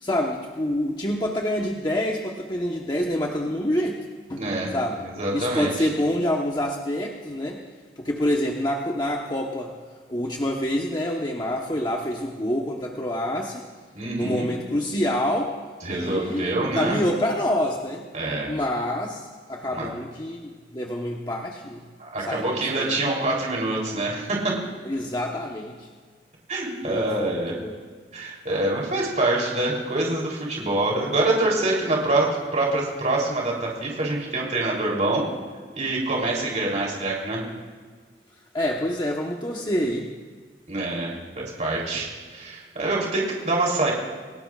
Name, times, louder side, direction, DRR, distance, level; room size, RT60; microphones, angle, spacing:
voice 1, 0.0-4.4 4.7-5.0 5.3-7.6 8.0-9.7 10.1-13.6 14.2-15.5 15.9-18.1 18.5-21.9 22.2-23.0 24.8-25.9 26.8-27.8 38.5-40.1, left 1 dB, 25° left, -1 dB, 1.1 m, -27 dB
voice 2, 4.4-4.7 5.0-5.7 13.9-14.5 15.8-17.0 18.1-18.5 19.7-19.9 22.0-24.5 26.5-27.5 28.1-35.2 35.7-37.4 40.7-43.9, right 2 dB, 45° right, -2 dB, 3.4 m, -25 dB
28.0 x 18.0 x 2.5 m, 1.5 s
head